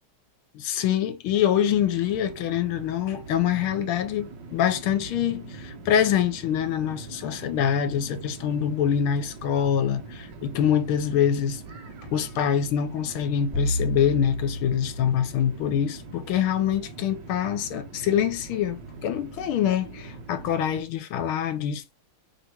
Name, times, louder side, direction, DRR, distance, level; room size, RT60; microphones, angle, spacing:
voice 1, 0.5-11.6 12.1-22.0, left 9 dB, 80° left, 1.6 m, -25 dB
sound 1, 1.7-20.8, right 3 dB, 60° right, 1.3 m, -42 dB
sound 2, 13.5-16.0, equal, 15° right, 1.4 m, -31 dB
5.0 x 2.9 x 2.9 m
omnidirectional pair, 2.4 m